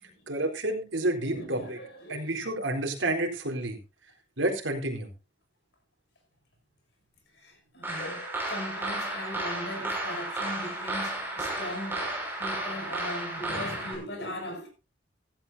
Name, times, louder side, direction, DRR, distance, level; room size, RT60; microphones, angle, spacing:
voice 1, 0.3-1.8 2.1-3.8 4.4-5.1, right 1 dB, 80° right, 3.9 m, -29 dB
voice 2, 1.2-2.4 7.3-14.7, left 1 dB, 60° left, 6.4 m, -39 dB
sound 1, 7.8-13.9, right 1 dB, 10° right, 5.8 m, -33 dB
16.0 x 15.0 x 2.7 m
head